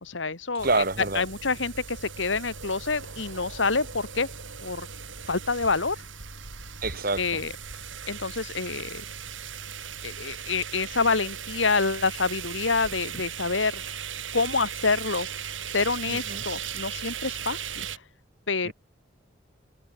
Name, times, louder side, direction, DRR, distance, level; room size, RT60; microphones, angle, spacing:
voice 1, 0.0-0.7 1.1-4.3 4.6-4.9 5.3-6.0 7.2-7.5 8.1-9.0 10.0-13.9 14.3-15.3 15.7-17.9 18.5-18.7, left 4 dB, 80° left, 2.0 m, -27 dB
voice 2, 0.6-1.2 6.8-7.2 16.1-16.4 18.6-18.7, right 2 dB, 50° right, 3.5 m, -27 dB
sound 1, 0.6-18.0, right 7 dB, 90° right, 4.7 m, -38 dB
head